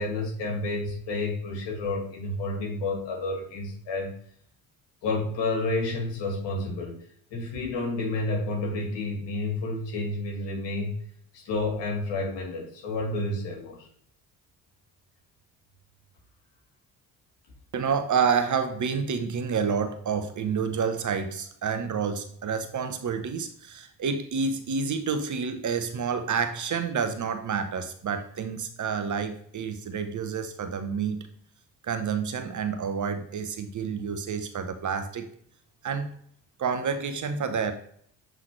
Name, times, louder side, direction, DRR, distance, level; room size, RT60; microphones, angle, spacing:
voice 1, 0.0-4.2 5.0-7.0 7.3-10.9 11.3-13.9, left 2 dB, 60° left, -1 dB, 2.4 m, -30 dB
voice 2, 17.7-31.3 31.8-35.3 35.8-36.1 36.6-37.7, right 6 dB, 40° right, 8 dB, 0.9 m, -29 dB
7.5 x 3.8 x 3.2 m, 0.62 s
hypercardioid pair, 50°, 47 cm